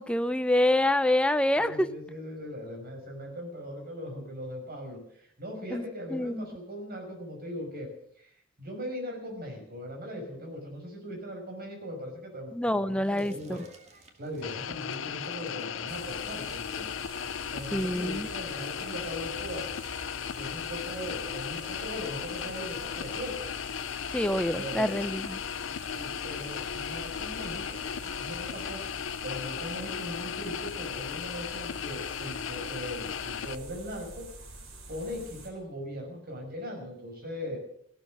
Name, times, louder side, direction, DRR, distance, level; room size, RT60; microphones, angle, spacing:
voice 1, 0.0-1.9 5.7-5.8 6.1-6.5 12.5-13.6 17.7-18.3 24.1-25.4, left 1 dB, 5° left, 11 dB, 0.6 m, -26 dB
voice 2, 1.6-7.9 8.2-8.3 8.6-13.6 14.2-16.9 17.5-19.7 20.3-23.5 24.5-24.9 25.9-28.8 29.2-34.2 34.9-37.6, equal, 50° right, 2 dB, 5.6 m, -39 dB
Crackle, 13.2-28.6, right 3 dB, 35° right, 2.4 m, -55 dB
sound 1, 14.4-33.6, left 8 dB, 70° left, 0.5 m, -36 dB
sound 2, 15.9-35.5, right 2 dB, 85° right, 3.8 m, -47 dB
15.5 x 12.5 x 6.5 m, 0.68 s
head